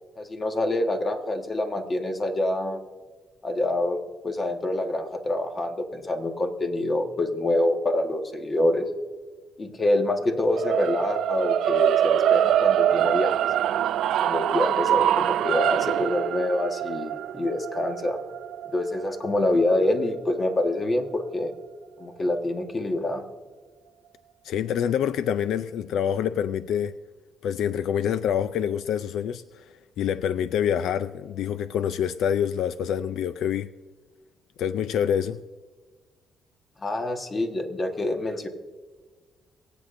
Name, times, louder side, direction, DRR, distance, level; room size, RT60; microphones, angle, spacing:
voice 1, 0.2-2.8 3.4-4.0 4.2-8.9 9.6-13.3 14.2-18.2 18.7-21.5 22.0-23.2 36.8-38.5, left 1 dB, 35° left, 4 dB, 1.5 m, -26 dB
sound 1, 10.5-20.7, right 11 dB, 80° right, 0.3 m, -24 dB
voice 2, 24.4-26.9 27.4-33.7 34.6-35.4, left 9 dB, 80° left, 13 dB, 0.3 m, -26 dB
23.0 x 8.4 x 2.6 m, 1.4 s
cardioid pair, 90°, 0 cm